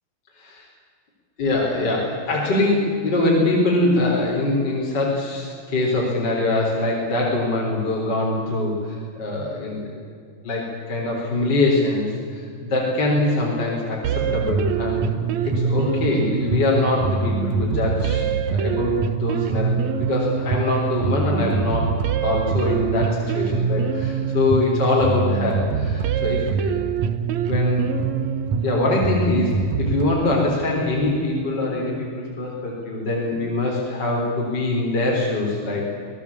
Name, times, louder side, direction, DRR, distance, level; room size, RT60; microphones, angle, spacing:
voice 1, 1.4-9.9 10.4-26.9 27.4-27.9 28.6-29.5 29.8-35.8, left 2 dB, 25° left, -3 dB, 4.1 m, -23 dB
sound 1, 14.0-30.0, right 6 dB, 75° right, 1.7 m, -24 dB
27.0 x 18.5 x 8.6 m, 2.4 s
omnidirectional pair, 4.6 m